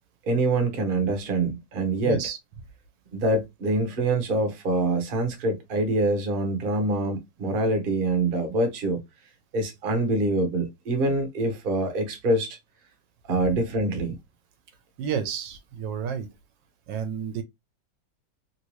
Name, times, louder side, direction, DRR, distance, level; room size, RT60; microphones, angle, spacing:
voice 1, 0.2-2.2 3.1-9.0 9.5-12.6 13.3-14.2, right 2 dB, 45° right, 0.7 m, -25 dB
voice 2, 2.0-2.4 15.0-16.3 16.9-17.4, right 7 dB, 75° right, 1.2 m, -30 dB
3.0 x 2.8 x 2.9 m
omnidirectional pair, 2.1 m